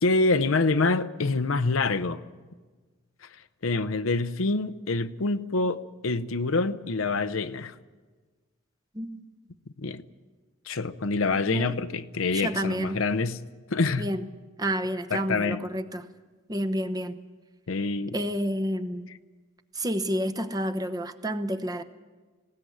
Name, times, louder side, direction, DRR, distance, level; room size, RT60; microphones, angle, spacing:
voice 1, 0.0-2.2 3.6-7.7 9.8-10.0 10.7-13.4 13.7-14.1 15.1-15.6 17.7-18.2, left 3 dB, 80° left, 0.7 m, -26 dB
voice 2, 12.3-13.0 14.0-14.2 14.6-16.1 16.5-17.2 18.1-19.1 19.7-21.8, equal, 20° right, 0.9 m, -29 dB
19.5 x 17.0 x 9.4 m
head